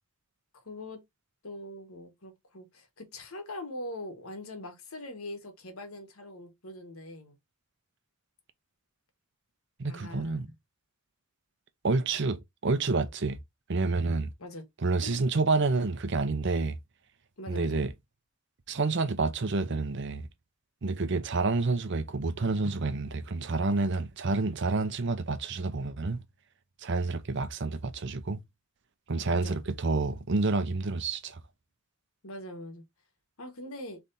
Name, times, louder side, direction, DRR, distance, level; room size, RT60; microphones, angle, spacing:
voice 1, 0.6-1.0 1.4-7.4 9.9-10.5 14.4-14.6 15.0-15.2 17.4-17.8 29.3-29.6 32.2-32.8 33.4-34.0, left 1 dB, 85° left, 1.5 m, -42 dB
voice 2, 9.8-10.5 11.8-13.4 13.7-14.3 14.8-16.8 17.5-17.9 18.7-20.2 20.8-26.2 26.8-28.4 29.1-31.4, right 3 dB, 55° right, 0.7 m, -29 dB
4.0 x 3.4 x 3.8 m
head